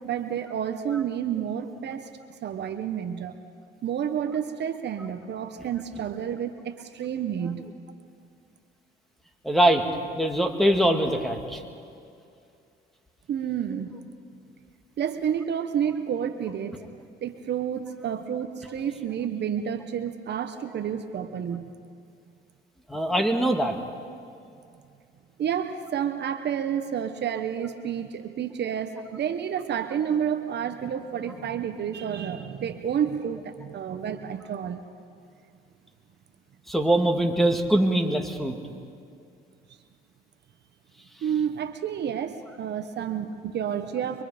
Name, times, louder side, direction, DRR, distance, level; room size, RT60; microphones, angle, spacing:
voice 1, 0.0-3.3 3.8-7.7 13.3-13.9 15.0-16.8 17.2-21.7 25.4-34.8 41.2-44.2, right 8 dB, 55° right, 7 dB, 1.2 m, -30 dB
voice 2, 9.4-9.8 10.2-11.6 22.9-23.8 36.7-38.6, right 1 dB, ahead, 4 dB, 2.4 m, -22 dB
25.0 x 22.5 x 5.2 m, 2.4 s
supercardioid pair, 80°, 21 cm